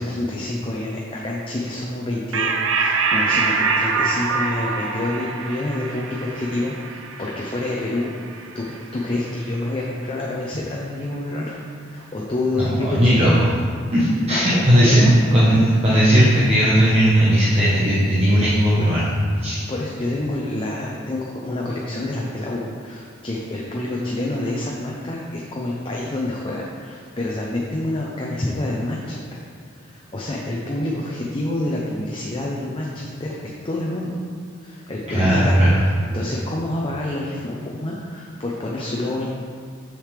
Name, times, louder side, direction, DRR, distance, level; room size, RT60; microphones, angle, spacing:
voice 1, 0.0-11.6 11.9-13.5 13.8-13.9 14.2-15.1 15.5-15.6 19.7-29.4 29.8-33.3 33.6-34.2 34.6-35.6 36.1-39.3, left 1 dB, 25° left, -3 dB, 0.6 m, -27 dB
sound 1, 2.3-9.2, right 4 dB, 70° right, 0.6 m, -24 dB
voice 2, 12.6-13.3 13.9-15.1 15.3-19.6 35.1-35.7, equal, 30° right, -8 dB, 0.9 m, -17 dB
6.6 x 6.3 x 3.3 m, 2.2 s
head